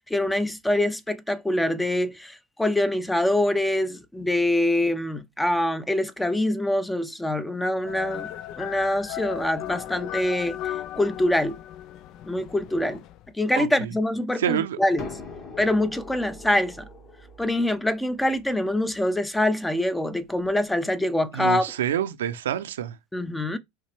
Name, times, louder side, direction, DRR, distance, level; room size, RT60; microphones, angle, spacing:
voice 1, 0.1-8.3 8.6-11.6 12.2-13.0 13.4-15.1 15.6-16.8 17.4-21.7 23.1-23.6, left 1 dB, 5° left, 0.6 m, -25 dB
sound 1, 7.9-13.3, left 12 dB, 55° left, 0.4 m, -36 dB
voice 2, 13.5-13.9 14.4-14.8 21.3-23.0, right 10 dB, 85° right, 0.6 m, -27 dB
sound 2, 15.0-20.6, left 3 dB, 40° left, 1.7 m, -43 dB
5.5 x 2.8 x 3.4 m
hypercardioid pair, 100°, 0 cm